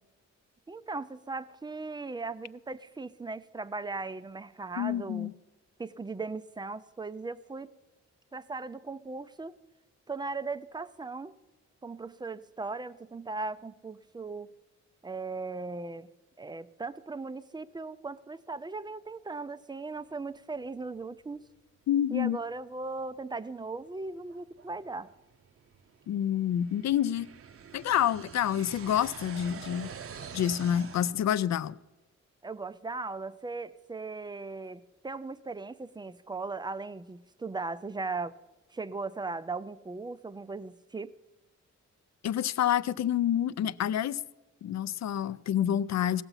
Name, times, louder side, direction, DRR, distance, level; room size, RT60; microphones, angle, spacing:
voice 1, 0.7-5.3 5.8-7.7 8.3-9.6 10.1-11.3 11.8-14.5 15.0-16.1 16.4-21.4 22.1-25.1 32.4-38.4 38.7-41.2, right 3 dB, 15° right, 0.3 m, -38 dB
voice 2, 4.8-5.3 21.9-22.4 26.1-27.3 27.7-29.9 30.3-31.8 42.2-44.2 44.6-46.2, left 10 dB, 65° left, 0.4 m, -28 dB
sound 1, 22.3-22.4 23.0-23.1 23.7-31.1, right 6 dB, 50° right, 0.6 m, -46 dB
17.0 x 7.0 x 5.6 m
wide cardioid pair, 160°, 29 cm